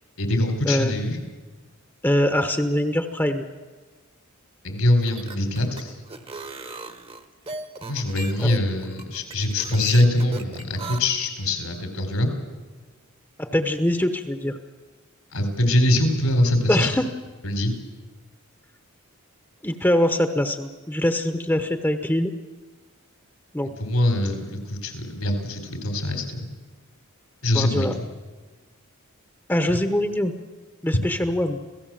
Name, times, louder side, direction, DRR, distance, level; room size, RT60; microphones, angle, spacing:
voice 1, 0.2-1.2 4.6-5.9 7.9-12.3 15.3-17.0 17.4-17.7 23.8-26.4 27.4-28.0, left 1 dB, 85° left, 6 dB, 3.9 m, -23 dB
voice 2, 2.0-3.4 8.4-8.5 13.4-14.6 16.7-17.1 19.6-22.3 23.5-23.7 27.5-27.9 29.5-30.3 30.8-31.6, left 1 dB, 10° left, 7 dB, 0.9 m, -23 dB
sound 1, 4.9-11.0, right 4 dB, 25° right, 1.1 m, -37 dB
27.0 x 17.0 x 7.5 m, 1.3 s
head